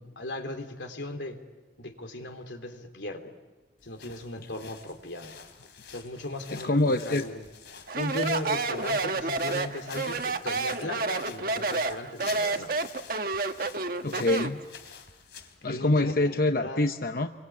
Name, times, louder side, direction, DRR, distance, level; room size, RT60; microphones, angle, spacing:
voice 1, 0.0-1.4 1.8-3.3 3.8-5.4 5.9-7.4 7.9-12.7 15.6-16.8, left 1 dB, 90° left, 6 dB, 3.4 m, -37 dB
sound 1, 3.8-15.7, left 7 dB, 70° left, 3.0 m, -48 dB
voice 2, 6.5-7.2 14.0-14.6 15.6-17.3, left 2 dB, 55° left, 7 dB, 0.9 m, -25 dB
Speech, 7.9-14.6, right 3 dB, 55° right, 1.3 m, -29 dB
29.5 x 24.0 x 8.5 m, 1.2 s
head